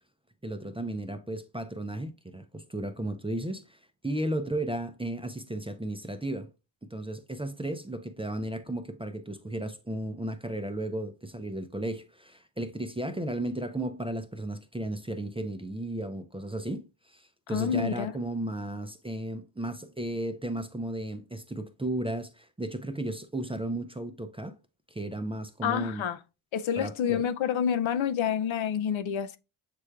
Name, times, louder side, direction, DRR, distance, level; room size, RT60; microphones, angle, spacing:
voice 1, 0.4-6.5 6.9-24.6 24.9-26.0 26.8-27.2, right 1 dB, 10° right, 0.4 m, -34 dB
voice 2, 17.5-18.1 25.6-26.2 26.5-29.4, left 8 dB, 75° left, 0.5 m, -28 dB
6.7 x 3.2 x 2.3 m
wide cardioid pair, 70°, 48 cm